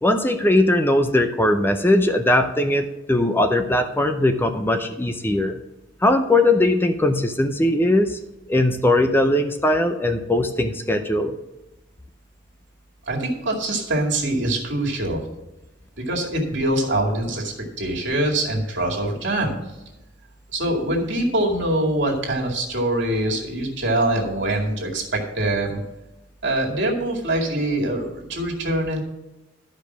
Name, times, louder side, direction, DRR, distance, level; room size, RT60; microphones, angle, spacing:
voice 1, 0.0-5.6 6.0-8.2 8.5-11.4, left 1 dB, 10° left, 7 dB, 0.5 m, -20 dB
voice 2, 13.1-15.2 16.1-19.5 20.5-25.8 26.4-29.0, right 1 dB, 65° right, -1 dB, 2.2 m, -24 dB
12.0 x 5.2 x 6.0 m, 0.99 s
head